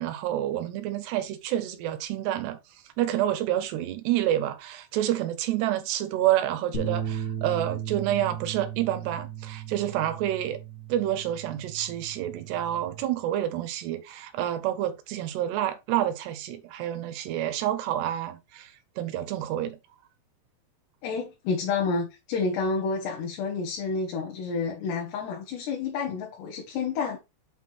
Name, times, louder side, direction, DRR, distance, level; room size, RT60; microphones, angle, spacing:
voice 1, 0.0-2.6 3.0-10.6 10.9-19.8, right 12 dB, 80° right, 3.2 m, -28 dB
sound 1, 6.7-13.0, right 8 dB, 30° left, 1.6 m, -36 dB
voice 2, 21.0-27.2, left 4 dB, 80° left, 3.8 m, -29 dB
8.4 x 3.8 x 4.4 m
omnidirectional pair, 4.8 m